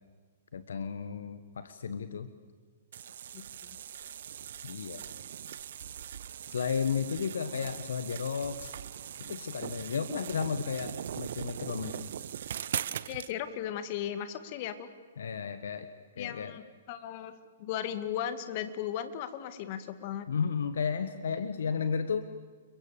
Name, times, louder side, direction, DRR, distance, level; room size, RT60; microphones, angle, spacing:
voice 1, 0.5-2.3 4.6-5.0 6.5-8.7 9.2-12.1 15.2-15.9 16.2-16.6 20.3-22.3, left 6 dB, 70° left, 11 dB, 1.3 m, -33 dB
sound 1, 2.9-13.3, right 9 dB, 60° right, 0.9 m, -40 dB
voice 2, 13.1-14.9 16.2-17.3 17.6-20.3, left 10 dB, 45° left, 11 dB, 2.1 m, -36 dB
29.5 x 23.0 x 7.1 m, 1.5 s
figure-of-eight pair, 120°, 0 cm